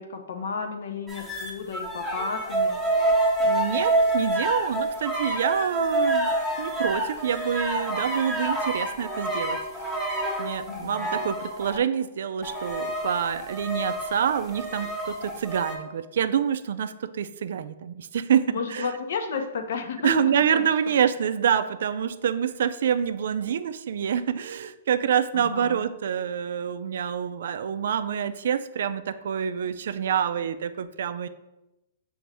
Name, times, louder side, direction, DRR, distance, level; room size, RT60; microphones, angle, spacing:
voice 1, 0.0-2.8 10.7-11.2 18.5-20.2 20.5-20.6 25.3-25.8, left 5 dB, 75° left, 6 dB, 0.7 m, -32 dB
sound 1, 1.1-11.8 12.4-15.8, right 1 dB, 5° left, 0.9 m, -27 dB
voice 2, 3.4-10.0 10.4-18.9 20.0-31.3, right 8 dB, 75° right, 12 dB, 0.3 m, -27 dB
6.2 x 2.6 x 3.3 m, 0.95 s
hypercardioid pair, 145°, 0 cm